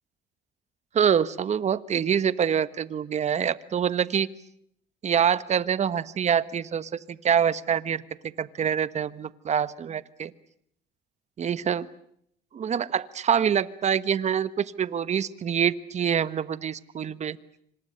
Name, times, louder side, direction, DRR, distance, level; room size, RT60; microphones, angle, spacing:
voice 1, 0.9-4.3 5.0-8.0 8.4-10.3 11.4-11.9 12.5-17.4, right 8 dB, 40° right, 16 dB, 1.4 m, -25 dB
28.0 x 26.0 x 6.7 m, 0.70 s
cardioid pair, 110°, 17 cm